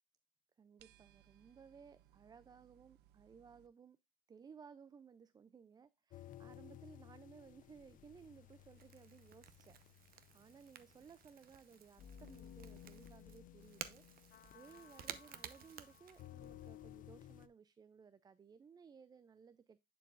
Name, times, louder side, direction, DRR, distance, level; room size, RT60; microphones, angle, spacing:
voice 1, 0.6-4.0 4.3-19.8, right 6 dB, 25° right, 0.4 m, -60 dB
sound 1, 0.8-3.7, right 12 dB, 85° right, 0.5 m, -68 dB
sound 2, 6.1-17.5, left 11 dB, 55° left, 0.5 m, -57 dB
Crackle / Crack, 7.1-16.7, right 10 dB, 60° right, 0.8 m, -55 dB
10.5 x 4.6 x 2.4 m
cardioid pair, 110°, 17 cm